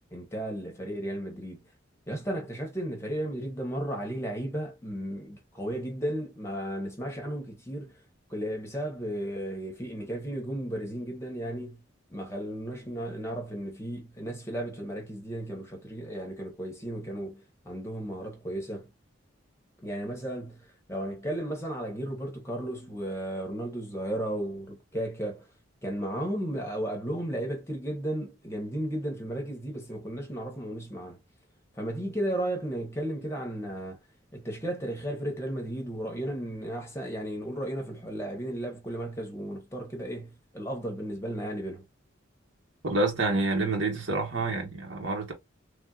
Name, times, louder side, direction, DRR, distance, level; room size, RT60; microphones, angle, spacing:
voice 1, 0.1-1.7 2.1-8.0 8.3-11.8 12.1-18.9 19.8-25.5 25.8-31.2 31.7-34.0 34.3-41.8, right 1 dB, 15° left, 0.9 m, -34 dB
voice 2, 42.8-45.3, right 2 dB, 65° right, 1.1 m, -28 dB
3.5 x 2.5 x 2.3 m
head